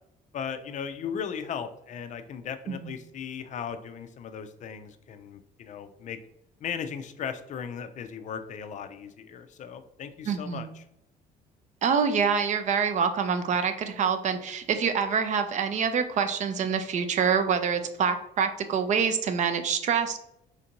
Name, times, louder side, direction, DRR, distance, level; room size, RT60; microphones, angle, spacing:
voice 1, 0.3-6.2 6.6-10.8, left 7 dB, 45° left, 10 dB, 0.4 m, -37 dB
voice 2, 10.3-10.7 11.8-20.2, right 6 dB, 45° right, 9 dB, 0.5 m, -26 dB
4.4 x 2.6 x 2.8 m, 0.80 s
cardioid pair, 110°, 17 cm